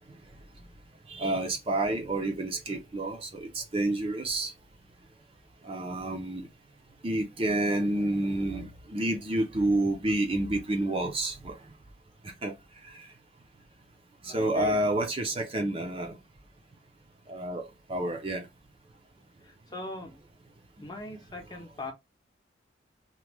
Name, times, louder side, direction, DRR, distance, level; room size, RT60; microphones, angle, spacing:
voice 1, 1.1-4.5 5.6-6.5 7.0-11.6 12.2-12.5 12.8-13.1 14.2-16.2 17.3-18.5 21.5-21.6, right 1 dB, 30° right, 0.5 m, -29 dB
voice 2, 14.3-14.8 19.4-20.2 20.8-21.9, left 2 dB, 20° left, 0.7 m, -40 dB
3.0 x 2.1 x 3.4 m
head